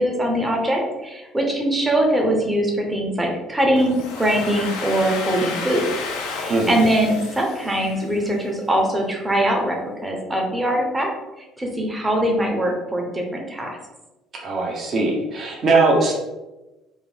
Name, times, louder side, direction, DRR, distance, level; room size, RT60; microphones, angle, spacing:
voice 1, 0.0-5.8 6.3-11.1 11.6-13.8, right 1 dB, 15° right, 1 dB, 0.9 m, -22 dB
Domestic sounds home sounds, 3.8-8.5, left 4 dB, 85° left, 0.6 m, -32 dB
voice 2, 6.5-6.9 14.4-16.1, right 3 dB, 45° right, -2 dB, 1.0 m, -20 dB
3.6 x 2.1 x 3.6 m, 1.1 s
supercardioid pair, 85°, 0 cm